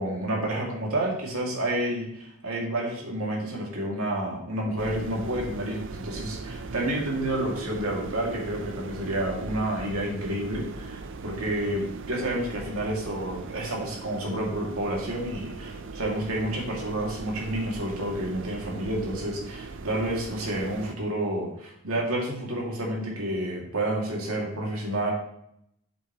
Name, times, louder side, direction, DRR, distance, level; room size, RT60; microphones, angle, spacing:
voice 1, 0.0-25.1, right 1 dB, 80° right, -2 dB, 2.4 m, -30 dB
sound 1, 4.8-20.9, right 3 dB, 60° right, 0.6 m, -39 dB
8.3 x 7.4 x 3.0 m, 0.73 s
head